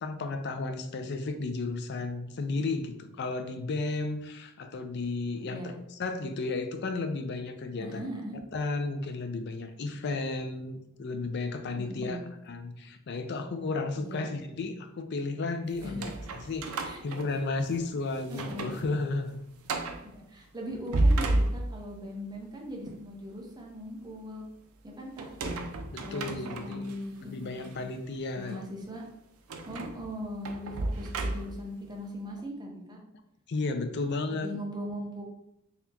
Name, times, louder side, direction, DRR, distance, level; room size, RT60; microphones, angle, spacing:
voice 1, 0.0-5.6 5.9-8.0 8.5-12.2 12.5-19.4 25.9-26.9 27.2-28.6 33.5-34.5, left 3 dB, 50° left, 7 dB, 0.4 m, -33 dB
voice 2, 5.4-5.8 7.8-8.4 11.8-12.2 14.0-14.3 15.8-16.2 16.8-17.0 18.3-18.7 20.0-24.4 24.8-25.3 26.0-27.8 28.3-29.0 29.6-33.0 34.3-35.2, equal, 20° right, 0 dB, 0.7 m, -39 dB
sound 1, 15.8-17.8 18.2-18.8 19.1-19.2 19.6-20.1 20.7-22.0 25.2-26.9 27.6-27.7 29.5-31.7, right 2 dB, 80° right, 0.5 m, -31 dB
4.1 x 2.8 x 2.8 m, 0.82 s
head